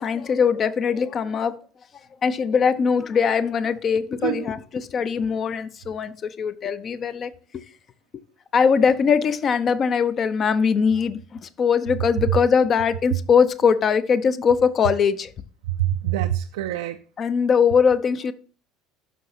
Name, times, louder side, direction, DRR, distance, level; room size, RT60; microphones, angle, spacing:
voice 1, 0.0-1.6 2.2-7.6 8.1-8.2 8.5-15.3 17.2-18.3, left 6 dB, 35° left, 0.6 m, -21 dB
voice 2, 12.0-12.4 13.1-13.2 15.8-17.0, right 13 dB, 65° right, 0.4 m, -25 dB
12.0 x 5.5 x 2.8 m
figure-of-eight pair, 65°, 0 cm